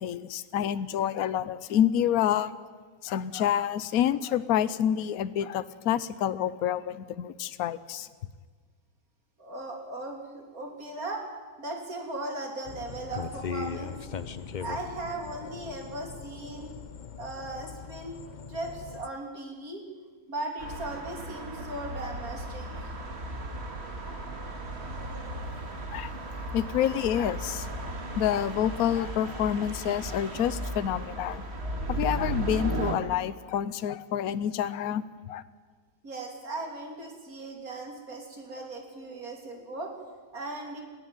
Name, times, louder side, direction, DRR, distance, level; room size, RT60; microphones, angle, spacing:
voice 1, 0.0-2.5 3.0-8.1 25.9-26.1 26.5-27.7 28.2-31.4 31.9-35.4, left 10 dB, 65° left, 15 dB, 1.2 m, -28 dB
voice 2, 9.4-11.3 11.6-14.0 14.6-16.7 17.2-18.2 18.5-19.8 20.3-22.9 36.0-39.9 40.3-40.8, right 2 dB, 55° right, 2 dB, 3.6 m, -38 dB
sound 1, 12.6-19.1, left 6 dB, 85° left, 0.4 m, -39 dB
sound 2, 20.6-33.0, right 2 dB, 40° right, 2.1 m, -35 dB
21.0 x 14.5 x 9.1 m, 1.5 s
omnidirectional pair, 1.8 m